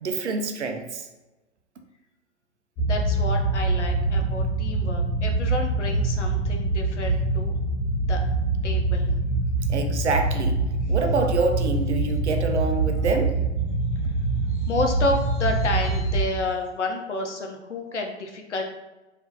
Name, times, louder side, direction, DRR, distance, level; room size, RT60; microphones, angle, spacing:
voice 1, 0.0-1.1 9.7-10.6 10.9-13.4, right 3 dB, 65° right, 5 dB, 0.7 m, -26 dB
voice 2, 2.8-7.5 8.1-8.2 8.6-9.1 14.0-14.1 14.5-18.6, left 2 dB, 75° left, 2 dB, 0.7 m, -30 dB
sound 1, 2.8-16.2, right 2 dB, 20° left, 0.8 m, -24 dB
3.6 x 2.8 x 2.7 m, 1.1 s
figure-of-eight pair, 110°, 36 cm